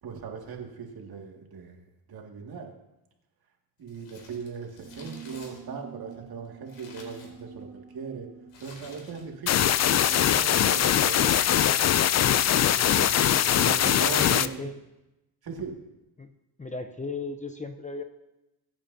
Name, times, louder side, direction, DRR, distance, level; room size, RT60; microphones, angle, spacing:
voice 1, 0.0-1.8 2.1-2.7 3.8-8.3 8.6-9.7 10.1-11.7 12.9-13.1 13.5-14.7 15.4-15.7, right 5 dB, 55° right, 1 dB, 2.2 m, -39 dB
Crumpling crinkling, 3.8-7.8 8.5-9.5 9.8-9.9 10.7-11.0 11.7-13.6 13.9-14.0, left 3 dB, 75° left, 3.6 m, -50 dB
sound 1, 4.9-10.1, right 7 dB, 30° right, 1.5 m, -47 dB
sound 2, 9.5-14.5, left 10 dB, 40° left, 0.5 m, -22 dB
voice 2, 12.8-13.5 14.3-14.7 16.2-16.3 16.6-18.0, left 3 dB, 15° left, 7 dB, 0.8 m, -37 dB
21.5 x 8.9 x 2.8 m, 0.94 s
cardioid pair, 100°, 44 cm